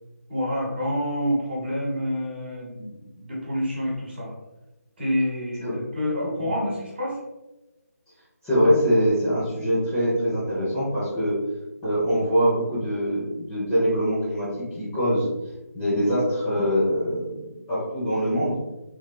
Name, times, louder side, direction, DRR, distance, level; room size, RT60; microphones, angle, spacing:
voice 1, 0.3-4.3 5.0-7.2 15.0-15.2, equal, 40° right, -4 dB, 1.0 m, -28 dB
voice 2, 8.4-11.4 11.8-15.3 15.7-18.6, equal, 10° left, -12 dB, 0.6 m, -23 dB
3.3 x 2.2 x 2.2 m, 0.98 s
figure-of-eight pair, 160°, 9 cm